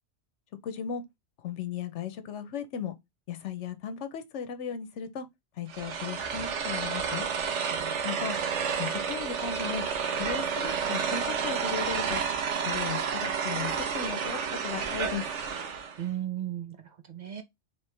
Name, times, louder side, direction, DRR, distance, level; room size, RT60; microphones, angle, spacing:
voice 1, 0.6-1.0 1.4-2.9 3.3-5.3 5.6-7.3 8.0-8.4 8.8-9.8 10.2-12.2 12.7-15.2, left 8 dB, 85° left, 1.0 m, -36 dB
sound 1, 5.7-16.0, right 6 dB, 85° right, 1.1 m, -30 dB
voice 2, 7.7-8.3 16.0-17.4, right 12 dB, 50° right, 0.6 m, -37 dB
4.6 x 3.1 x 3.2 m
omnidirectional pair, 1.2 m